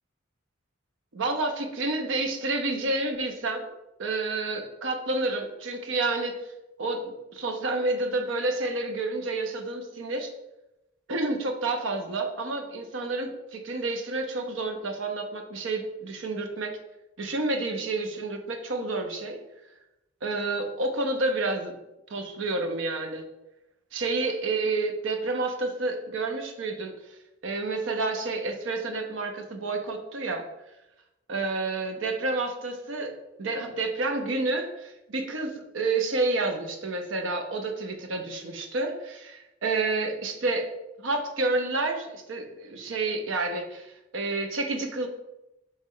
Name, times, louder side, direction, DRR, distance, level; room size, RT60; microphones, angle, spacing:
voice 1, 1.1-3.7 4.0-6.4 6.8-10.3 11.1-16.8 17.2-19.4 20.2-21.7 22.1-23.2 23.9-26.9 27.4-30.4 31.3-33.1 33.4-40.7 41.0-45.1, right 2 dB, 75° right, 5 dB, 0.6 m, -29 dB
4.1 x 3.1 x 3.7 m, 0.93 s
head